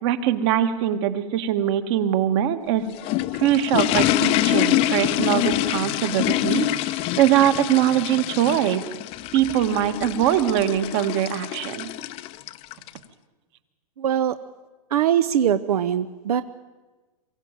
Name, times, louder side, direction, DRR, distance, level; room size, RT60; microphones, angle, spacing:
voice 1, 0.0-2.8 3.4-8.8 9.3-11.9, right 11 dB, 45° right, 11 dB, 1.7 m, -22 dB
sound 1, 2.7-13.0, left 14 dB, 30° left, 0.7 m, -25 dB
voice 2, 14.0-14.4 14.9-16.4, right 9 dB, 80° right, 12 dB, 0.9 m, -21 dB
23.5 x 15.5 x 9.0 m, 1.3 s
hypercardioid pair, 145°, 19 cm